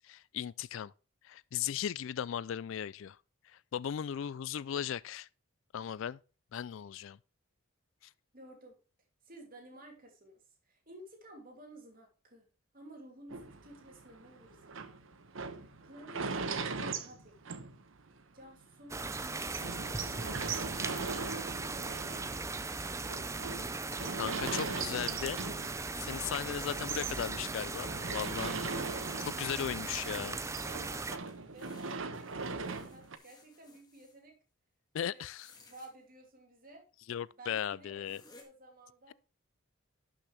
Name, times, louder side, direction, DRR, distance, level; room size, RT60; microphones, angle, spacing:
voice 1, 0.0-0.9 1.2-3.2 3.4-5.3 5.7-6.2 6.5-7.2 24.2-25.4 26.0-28.5 29.4-30.4 34.9-35.5 37.1-38.2, left 9 dB, 65° left, 0.3 m, -37 dB
voice 2, 8.3-8.8 9.2-12.5 12.7-15.2 15.5-17.8 18.3-20.1 20.5-22.6 26.4-26.8 28.4-29.9 30.5-34.3 35.0-35.3 35.7-36.8 37.4-39.1, right 1 dB, 40° right, 2.8 m, -54 dB
sound 1, 13.3-18.2 18.6-18.7 19.0-19.1 19.5-26.3 26.6-29.7 30.0-33.2, right 4 dB, 65° right, 0.9 m, -40 dB
sound 2, 18.9-31.2, right 3 dB, 15° right, 0.4 m, -38 dB
sound 3, 31.1-34.2 35.2-35.9 37.1-37.2 37.6-37.7 38.0-38.4, left 3 dB, 20° left, 1.6 m, -61 dB
11.5 x 6.3 x 3.3 m
head